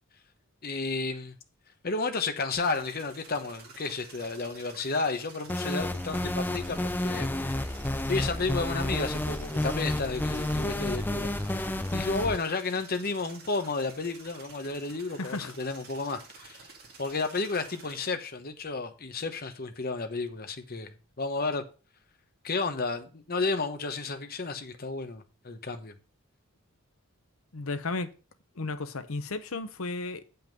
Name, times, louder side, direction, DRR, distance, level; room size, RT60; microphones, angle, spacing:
voice 1, 0.6-1.4 1.8-7.3 8.0-11.3 11.9-16.7 17.0-21.6 22.4-25.9, left 3 dB, 45° left, 1.0 m, -32 dB
sound 1, 2.5-18.1, right 4 dB, 50° right, 2.3 m, -51 dB
sound 2, 5.5-12.4, left 1 dB, 10° left, 0.4 m, -30 dB
voice 2, 15.2-15.5 27.5-28.1 28.6-30.4, left 3 dB, 70° left, 0.9 m, -34 dB
7.6 x 5.8 x 5.2 m
head